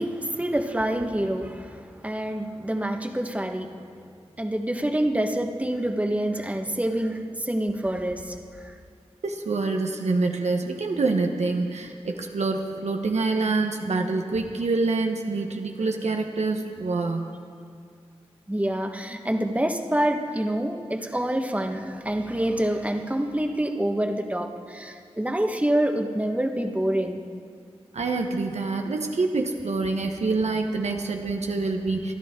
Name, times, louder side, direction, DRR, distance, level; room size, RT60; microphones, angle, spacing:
voice 1, 0.0-3.7 4.4-8.7 18.5-27.2, right 1 dB, 10° right, 4 dB, 1.4 m, -27 dB
voice 2, 9.2-17.4 27.9-32.1, right 3 dB, 80° right, 3 dB, 1.1 m, -26 dB
25.5 x 11.0 x 3.8 m, 2.3 s
cardioid pair, 50°, 11 cm